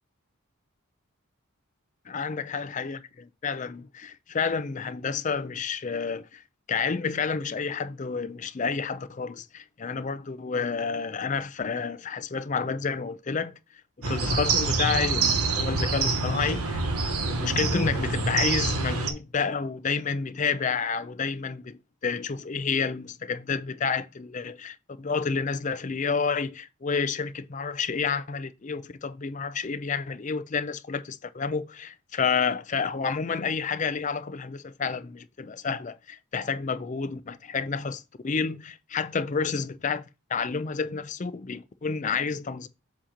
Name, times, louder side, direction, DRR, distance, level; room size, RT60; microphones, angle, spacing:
voice 1, 2.1-6.4 6.7-13.5 14.0-16.8 17.2-40.0 40.3-42.7, left 5 dB, 35° left, 0.4 m, -30 dB
sound 1, 14.0-19.1, right 3 dB, 90° right, 1.1 m, -26 dB
7.4 x 2.9 x 5.0 m
head